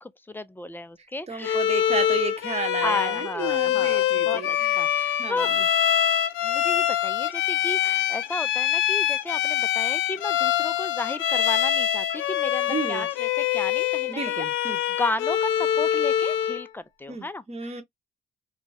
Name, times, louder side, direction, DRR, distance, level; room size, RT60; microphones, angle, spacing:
voice 1, 0.0-1.6 2.8-5.5 6.4-14.5 15.0-17.8, left 2 dB, 10° left, 0.3 m, -34 dB
voice 2, 1.3-5.6 12.7-13.1 14.1-14.8 17.1-17.8, right 5 dB, 30° right, 0.8 m, -33 dB
Bowed string instrument, 1.4-16.7, left 11 dB, 80° left, 0.4 m, -24 dB
2.2 x 2.1 x 3.3 m
cardioid pair, 90°, 20 cm